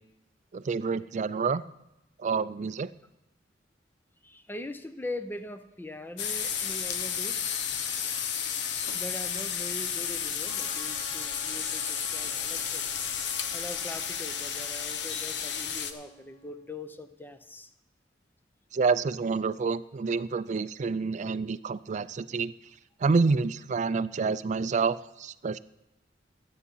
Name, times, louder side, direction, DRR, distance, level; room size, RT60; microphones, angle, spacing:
voice 1, 0.5-1.6 2.2-2.9 18.7-22.5 23.0-25.6, right 4 dB, 40° right, 16 dB, 0.4 m, -28 dB
voice 2, 4.2-7.7 8.9-12.8 13.5-17.7, left 1 dB, 10° left, 10 dB, 0.7 m, -42 dB
sound 1, 6.2-15.9, left 7 dB, 80° left, 0.9 m, -32 dB
Trumpet, 10.4-16.6, right 1 dB, 30° left, 1.9 m, -52 dB
12.5 x 8.4 x 5.6 m, 0.90 s
head